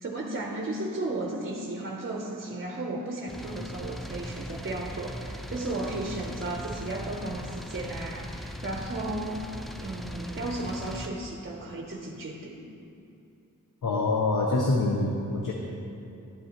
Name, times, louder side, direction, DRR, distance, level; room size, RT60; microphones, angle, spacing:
voice 1, 0.0-9.4 9.8-12.6, right 2 dB, 40° right, 1 dB, 0.6 m, -34 dB
sound 1, 3.3-11.1, equal, ahead, 0.3 m, -39 dB
voice 2, 13.8-15.5, left 2 dB, 70° left, -1 dB, 0.8 m, -25 dB
11.5 x 7.9 x 2.9 m, 2.7 s
wide cardioid pair, 105°, 33 cm